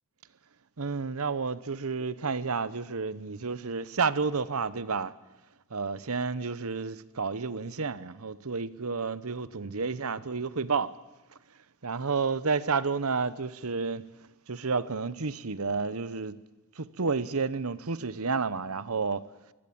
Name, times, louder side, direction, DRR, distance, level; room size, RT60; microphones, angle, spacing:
voice 1, 0.8-5.1 5.7-10.9 11.8-14.0 14.5-16.4 16.8-19.2, right 4 dB, 70° right, 0.9 m, -30 dB
24.0 x 17.5 x 8.8 m
head